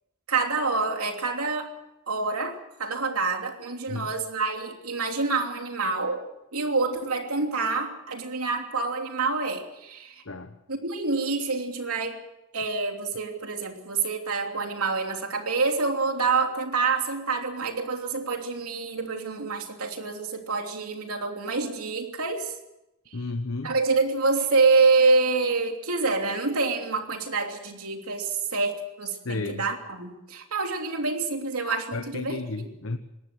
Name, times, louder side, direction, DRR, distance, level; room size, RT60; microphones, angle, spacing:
voice 1, 0.3-1.7 2.1-6.2 6.5-10.2 10.7-12.2 12.5-22.5 23.6-32.4, right 4 dB, 85° right, 4 dB, 3.1 m, -27 dB
voice 2, 10.2-10.6 23.1-23.7 29.2-29.7 31.9-33.0, left 3 dB, 65° left, 8 dB, 1.1 m, -32 dB
21.5 x 18.5 x 7.7 m, 0.91 s
head